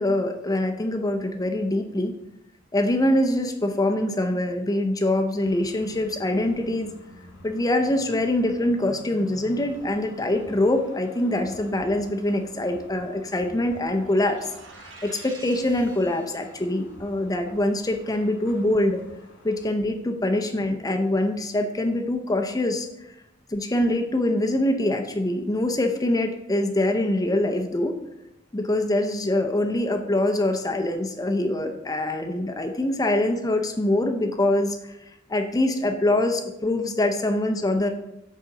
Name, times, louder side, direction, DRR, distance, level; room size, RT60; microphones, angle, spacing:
voice 1, 0.0-2.1 2.7-6.9 7.4-14.5 15.0-19.0 19.4-23.2 23.5-28.0 28.5-37.9, left 1 dB, 20° left, 5 dB, 0.6 m, -24 dB
sound 1, 5.4-19.7, left 1 dB, 75° left, 2.1 m, -49 dB
sound 2, 13.8-16.6, right 3 dB, 75° right, 1.3 m, -47 dB
8.4 x 4.0 x 6.6 m, 0.88 s
head